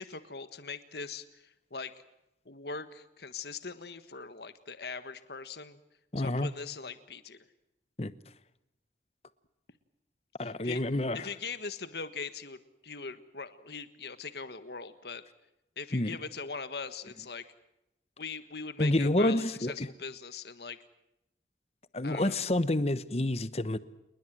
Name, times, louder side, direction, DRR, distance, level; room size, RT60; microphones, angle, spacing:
voice 1, 0.0-1.9 2.4-5.8 6.2-7.4 10.4-10.8 11.1-15.2 15.8-17.4 18.2-20.8 22.0-22.4, left 4 dB, 65° left, 1.5 m, -41 dB
voice 2, 6.1-6.5 8.0-8.1 10.4-11.3 15.9-16.2 18.8-19.9 21.9-23.8, left 1 dB, 35° left, 1.0 m, -28 dB
28.5 x 21.0 x 7.6 m
head